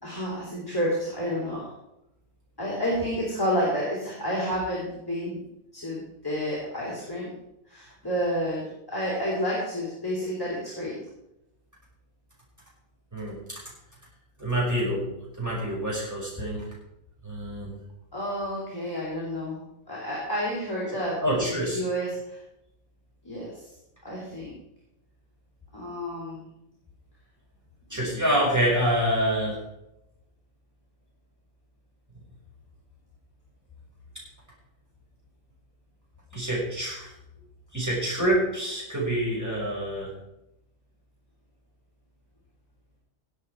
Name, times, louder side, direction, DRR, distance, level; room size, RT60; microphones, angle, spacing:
voice 1, 0.0-1.6 2.6-5.4 5.7-7.3 7.7-10.9 18.1-19.6 19.9-22.4 23.2-23.6 24.0-24.5 25.7-26.4 27.9-28.2, equal, 15° left, -6 dB, 3.8 m, -30 dB
voice 2, 13.1-13.6 14.4-15.1 15.4-16.6 17.2-17.7 21.2-21.8 27.9-29.6 36.3-37.1 37.7-40.1, right 1 dB, 10° right, -6 dB, 5.8 m, -26 dB
18.0 x 8.2 x 4.8 m, 0.85 s
omnidirectional pair, 1.5 m